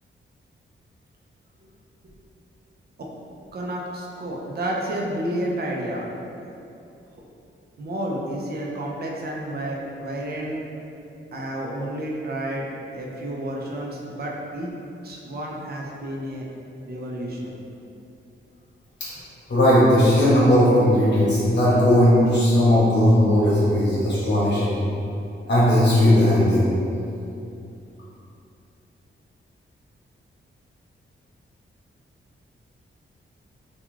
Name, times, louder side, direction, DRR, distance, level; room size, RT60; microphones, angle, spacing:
voice 1, 3.5-6.0 7.8-10.6 11.3-12.7 12.9-14.7 15.0-16.5 16.8-17.5, right 1 dB, 50° right, -2 dB, 0.5 m, -30 dB
voice 2, 19.5-24.7 25.5-26.7, left 1 dB, 55° left, -8 dB, 0.9 m, -17 dB
2.3 x 2.3 x 3.0 m, 2.7 s
wide cardioid pair, 95°, 21 cm